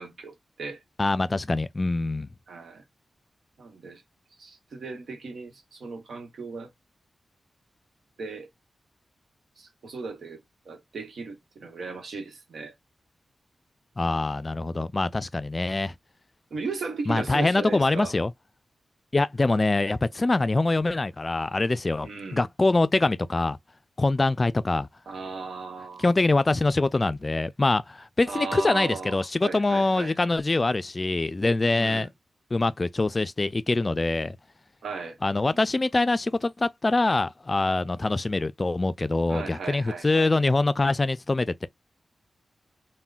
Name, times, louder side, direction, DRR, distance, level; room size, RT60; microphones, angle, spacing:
voice 1, 0.0-0.8 2.5-2.8 3.6-4.0 4.4-6.7 8.2-8.5 9.6-10.4 10.7-12.7 16.5-18.1 22.0-22.5 25.1-26.1 28.3-30.1 31.7-32.1 34.8-35.2 39.3-40.3, right 4 dB, 75° right, 1.0 m, -36 dB
voice 2, 1.0-2.3 14.0-15.9 17.1-18.3 19.1-23.6 24.0-24.9 26.0-32.1 32.5-34.4 35.2-41.7, left 2 dB, 40° left, 0.3 m, -24 dB
3.6 x 2.1 x 2.4 m
supercardioid pair, 40°, 0 cm